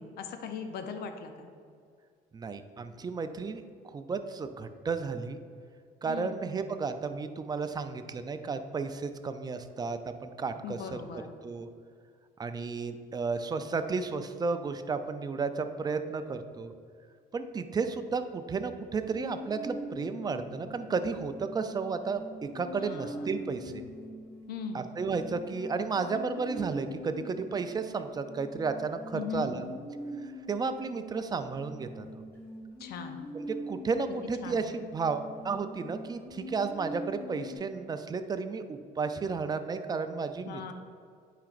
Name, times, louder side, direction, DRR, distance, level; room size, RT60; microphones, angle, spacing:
voice 1, 0.0-1.5 6.1-6.4 10.6-11.4 22.8-23.3 24.5-24.9 29.1-29.5 32.8-33.3 34.4-34.7 40.5-40.7, left 6 dB, 70° left, 6 dB, 0.6 m, -39 dB
voice 2, 2.3-3.6 3.9-5.4 6.0-11.0 11.4-11.7 12.4-16.7 17.3-23.8 24.7-29.6 30.2-32.1 33.3-40.7, right 4 dB, 25° right, 9 dB, 0.4 m, -33 dB
sound 1, 19.0-37.6, equal, 15° left, 1.6 m, -43 dB
9.0 x 4.9 x 2.5 m, 2.2 s
cardioid pair, 110°, 17 cm